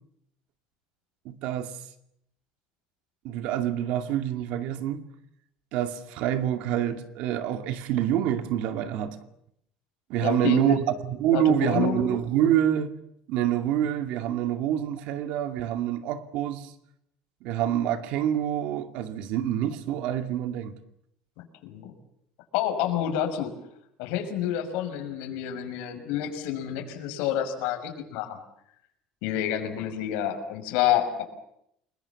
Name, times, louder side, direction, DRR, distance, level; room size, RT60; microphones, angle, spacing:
voice 1, 1.2-1.8 3.2-5.0 5.7-9.2 10.1-12.9 13.3-16.7 17.4-20.7, right 11 dB, 65° right, 2.4 m, -26 dB
voice 2, 10.2-10.8 11.3-12.0 21.4-21.9 22.5-23.5 24.0-28.4 29.2-31.2, left 10 dB, 80° left, 6.1 m, -28 dB
30.0 x 21.5 x 7.2 m
cardioid pair, 165°, 2 cm